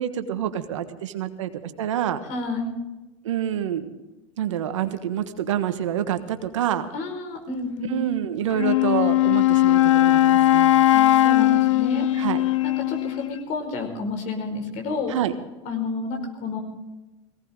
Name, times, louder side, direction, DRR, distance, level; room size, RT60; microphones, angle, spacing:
voice 1, 0.0-2.2 3.2-3.9 4.4-6.9 7.9-10.8 12.2-12.5 15.1-15.3, right 10 dB, 85° right, 9 dB, 1.4 m, -27 dB
voice 2, 2.3-2.8 6.9-7.9 10.9-12.1 12.6-15.1 15.6-16.6, left 3 dB, 55° left, 4 dB, 4.8 m, -30 dB
Wind instrument woodwind instrument, 8.5-13.4, left 15 dB, 85° left, 0.5 m, -19 dB
19.0 x 17.5 x 3.7 m, 1.1 s
hypercardioid pair, 90°, 15 cm